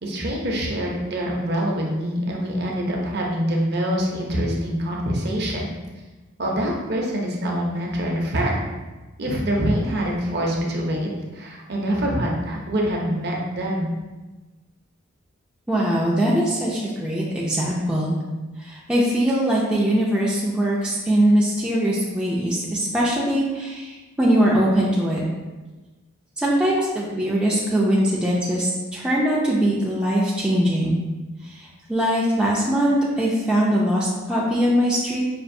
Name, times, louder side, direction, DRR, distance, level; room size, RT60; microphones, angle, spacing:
voice 1, 0.0-5.7 6.4-8.6 9.2-13.9, equal, 50° right, -1 dB, 0.6 m, -25 dB
voice 2, 15.7-18.2 18.6-25.2 26.4-31.0 31.4-35.2, equal, 5° right, -6 dB, 0.3 m, -21 dB
5.1 x 2.5 x 2.6 m, 1.2 s
head